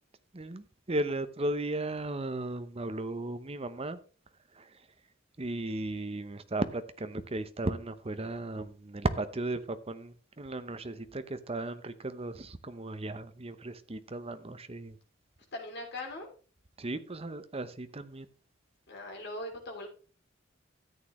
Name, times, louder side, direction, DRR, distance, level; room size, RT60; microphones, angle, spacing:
voice 1, 0.3-4.0 4.5-4.7 5.4-15.0 16.8-18.3, right 2 dB, 30° right, 0.8 m, -35 dB
voice 2, 15.5-16.3 18.9-19.9, left 1 dB, 60° left, 3.3 m, -40 dB
13.5 x 8.7 x 3.2 m
head